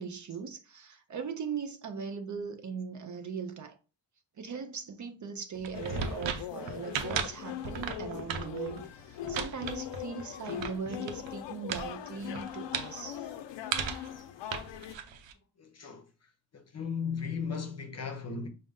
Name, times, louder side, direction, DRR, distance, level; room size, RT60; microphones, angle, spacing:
voice 1, 0.0-3.8 4.4-13.3, right 6 dB, 40° right, 0.5 m, -39 dB
sound 1, 5.5-11.3 11.7-11.9 12.2-12.9 13.7-14.1 14.5-15.3, right 7 dB, 90° right, 0.6 m, -36 dB
sound 2, 5.7-14.9, left 11 dB, 75° left, 0.5 m, -41 dB
voice 2, 15.6-16.1 16.5-18.5, left 5 dB, 35° left, 0.7 m, -36 dB
5.1 x 2.1 x 3.6 m
wide cardioid pair, 140°, 44 cm